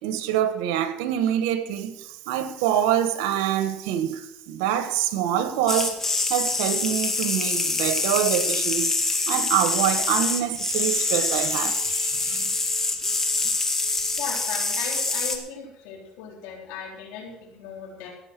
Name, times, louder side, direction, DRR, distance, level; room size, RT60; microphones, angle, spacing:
voice 1, 0.0-6.0 6.3-8.9 9.3-12.5, right 10 dB, 90° right, 1.4 m, -25 dB
sound 1, 5.7-15.4, left 3 dB, 20° left, 2.2 m, -25 dB
voice 2, 14.2-18.1, left 6 dB, 85° left, 3.9 m, -37 dB
16.0 x 8.7 x 6.1 m
supercardioid pair, 100°, 2 cm